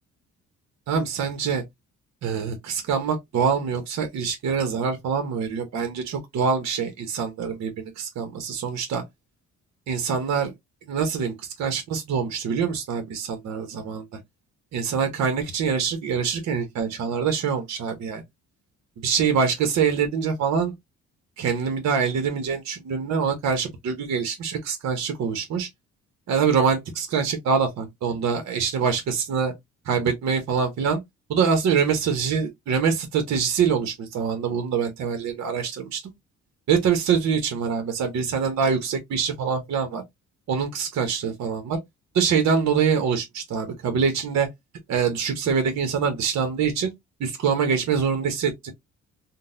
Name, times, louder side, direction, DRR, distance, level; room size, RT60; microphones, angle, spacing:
voice 1, 0.9-1.6 2.2-9.0 9.9-10.5 10.9-14.1 14.7-18.2 19.0-20.7 21.4-25.7 26.3-29.5 29.9-31.0 31.3-36.1 36.7-40.0 40.5-41.8 42.1-44.5 44.9-46.9 47.2-48.7, right 6 dB, 65° right, 0.8 m, -24 dB
3.8 x 2.1 x 2.5 m
cardioid pair, 90°, 30 cm